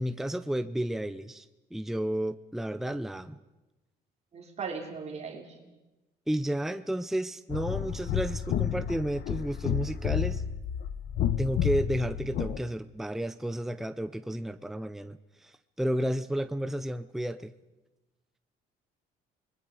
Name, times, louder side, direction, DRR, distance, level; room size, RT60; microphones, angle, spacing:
voice 1, 0.0-3.4 6.3-10.4 11.4-17.5, right 1 dB, ahead, 11 dB, 0.7 m, -32 dB
voice 2, 4.3-5.4, right 5 dB, 40° right, 2 dB, 3.3 m, -37 dB
sound 1, 7.5-12.6, left 9 dB, 70° left, 1.2 m, -31 dB
28.5 x 21.5 x 5.0 m, 1.0 s
cardioid pair, 110°, 17 cm